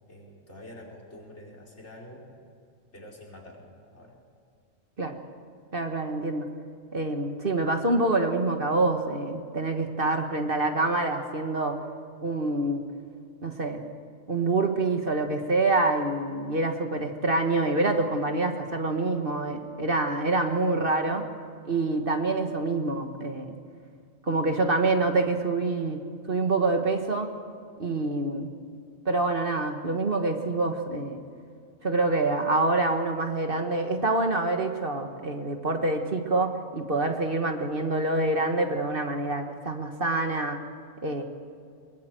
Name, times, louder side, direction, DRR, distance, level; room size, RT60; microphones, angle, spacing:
voice 1, 0.1-2.2 2.9-4.2, left 1 dB, 55° left, 0 dB, 5.2 m, -47 dB
voice 2, 5.7-6.5 6.9-11.8 12.2-12.8 13.4-13.8 14.3-21.2 21.6-23.5 24.3-26.0 26.3-27.3 27.8-28.5 29.0-31.2 31.8-40.6 41.0-41.2, right 2 dB, 45° right, 4 dB, 1.7 m, -26 dB
22.5 x 22.0 x 7.8 m, 2.3 s
omnidirectional pair, 1.4 m